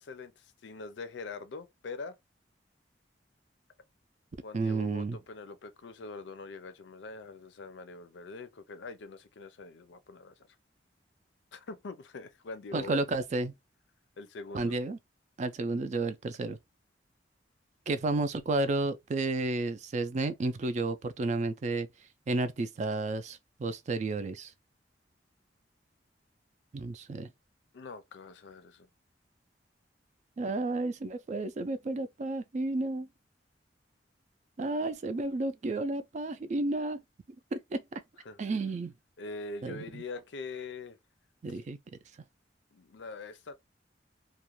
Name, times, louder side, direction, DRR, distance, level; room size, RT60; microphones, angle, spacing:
voice 1, 0.0-2.2 4.4-10.3 11.5-13.0 14.2-14.7 27.7-28.9 38.2-38.4 39.2-41.0 41.5-41.6 42.7-43.5, left 3 dB, 80° left, 0.5 m, -43 dB
voice 2, 4.5-5.2 12.7-13.5 14.5-15.0 15.4-16.6 17.9-21.9 22.3-24.5 26.7-27.3 30.4-33.1 34.6-37.0 37.5-38.0 38.4-38.9 39.6-40.0 41.4-41.8, right 2 dB, 40° right, 0.3 m, -32 dB
2.4 x 2.2 x 2.9 m
head